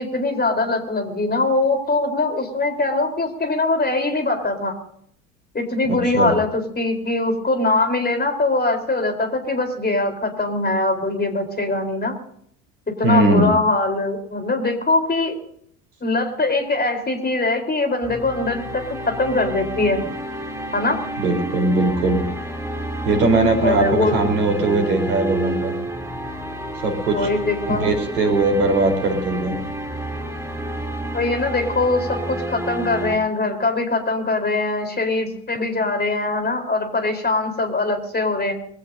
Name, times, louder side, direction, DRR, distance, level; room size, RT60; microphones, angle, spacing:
voice 1, 0.0-4.8 5.5-12.1 12.9-15.3 16.0-20.1 20.7-21.0 23.6-24.2 27.1-27.9 31.1-38.5, left 2 dB, 20° left, 4 dB, 4.2 m, -22 dB
voice 2, 5.9-6.3 13.0-13.5 21.2-22.2 23.0-25.8 26.7-27.3 27.7-29.6, right 2 dB, 75° right, 3 dB, 4.3 m, -20 dB
sound 1, 18.0-33.2, right 1 dB, 5° right, 3.2 m, -30 dB
23.5 x 16.5 x 2.8 m, 0.66 s
figure-of-eight pair, 60°, 46 cm